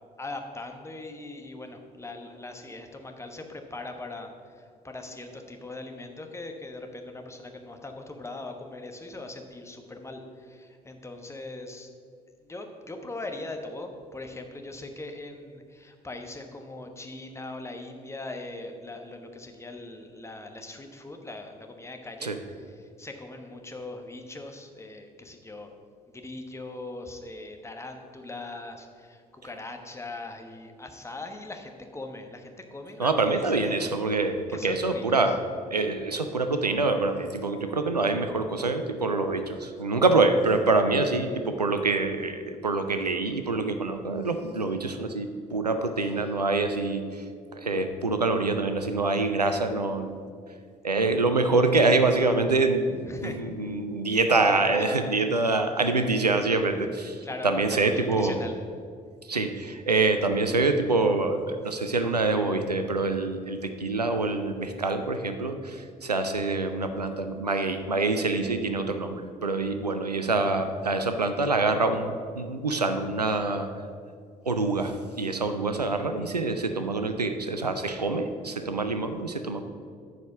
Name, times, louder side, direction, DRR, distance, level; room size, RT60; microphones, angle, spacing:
voice 1, 0.2-11.9 12.4-25.7 26.1-33.9 34.5-35.3 53.1-53.4 54.2-55.2 57.2-58.6, left 2 dB, 15° left, 4 dB, 1.1 m, -40 dB
voice 2, 33.0-35.4 35.7-50.2 50.8-58.4 59.2-73.7 74.4-79.6, right 3 dB, 90° right, 8 dB, 0.4 m, -26 dB
9.1 x 4.8 x 7.0 m, 2.1 s
figure-of-eight pair, 50°, 20 cm